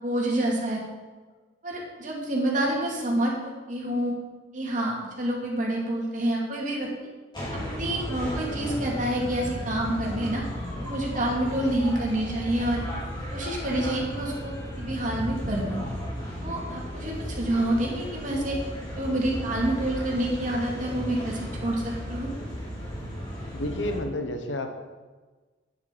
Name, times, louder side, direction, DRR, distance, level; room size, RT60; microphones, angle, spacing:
voice 1, 0.0-0.8 1.6-4.1 4.5-6.9 7.5-10.4 10.8-12.8 13.3-15.8 16.4-18.6 18.9-22.3, right 1 dB, 45° right, -2 dB, 2.6 m, -28 dB
sound 1, 7.3-24.0, equal, 25° left, 3.9 m, -34 dB
voice 2, 23.5-24.7, left 1 dB, 80° left, 6 dB, 1.2 m, -30 dB
9.3 x 9.2 x 5.3 m, 1.3 s
head